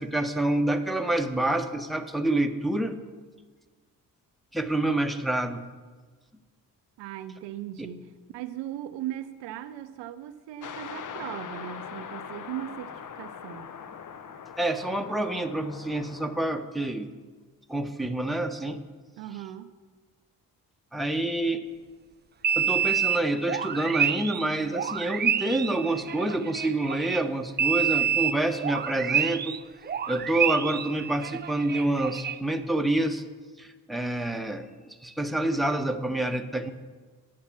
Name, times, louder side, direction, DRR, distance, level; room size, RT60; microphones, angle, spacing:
voice 1, 0.0-3.0 4.5-5.6 14.6-17.1 17.7-18.8 20.9-21.6 22.6-29.6 30.1-33.2 33.6-36.7, right 1 dB, ahead, 6 dB, 0.8 m, -27 dB
voice 2, 7.0-13.7 19.2-19.7, right 12 dB, 75° right, 11 dB, 0.6 m, -38 dB
sound 1, 10.6-16.6, left 7 dB, 45° left, 0.8 m, -41 dB
sound 2, 22.4-27.2 27.6-29.6 29.8-32.4, right 8 dB, 25° right, 0.4 m, -28 dB
8.5 x 6.0 x 7.4 m, 1.4 s
hypercardioid pair, 45°, 43 cm